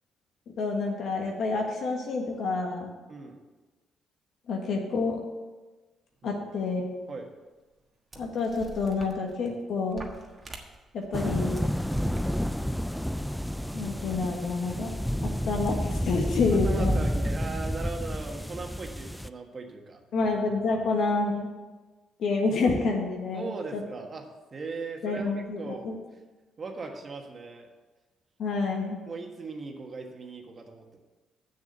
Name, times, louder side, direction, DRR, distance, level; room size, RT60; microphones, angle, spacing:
voice 1, 0.6-2.9 4.5-5.2 6.2-6.8 8.2-10.1 10.9-11.5 13.7-14.9 15.2-17.0 20.1-21.5 22.2-23.8 25.0-26.0 28.4-29.0, left 3 dB, 70° left, 1 dB, 1.5 m, -28 dB
voice 2, 3.1-3.4 6.2-6.4 7.1-7.3 11.8-12.3 16.5-20.0 23.3-24.2 24.5-25.3 25.6-25.9 26.6-27.7 29.1-31.0, right 4 dB, 40° right, 3 dB, 1.5 m, -39 dB
sound 1, 7.0-7.1 7.8-7.9 8.1-9.5 9.9-11.1 11.6-12.3, right 2 dB, 25° right, 1.4 m, -46 dB
sound 2, 11.1-19.3, equal, 5° left, 0.4 m, -30 dB
7.0 x 6.8 x 7.8 m, 1.3 s
cardioid pair, 90°, 0 cm